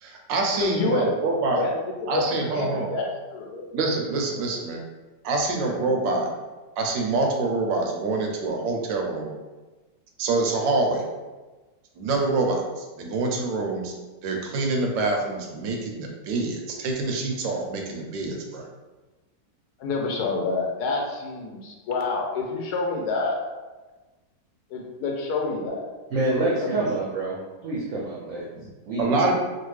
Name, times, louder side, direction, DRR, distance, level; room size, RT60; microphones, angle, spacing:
voice 1, 0.0-1.6 2.1-2.9 3.7-4.8 5.2-6.3 6.8-9.4 10.2-11.0 12.0-13.9 14.2-18.7 29.0-29.3, right 3 dB, 90° right, 1 dB, 1.3 m, -26 dB
voice 2, 0.6-1.1 1.5-3.6 19.8-23.4 24.7-25.8 26.6-26.8, left 3 dB, 70° left, 0 dB, 1.1 m, -28 dB
voice 3, 26.1-27.4 27.6-29.3, right 2 dB, 70° right, -5 dB, 0.7 m, -27 dB
3.2 x 2.3 x 3.1 m, 1.2 s
omnidirectional pair, 2.0 m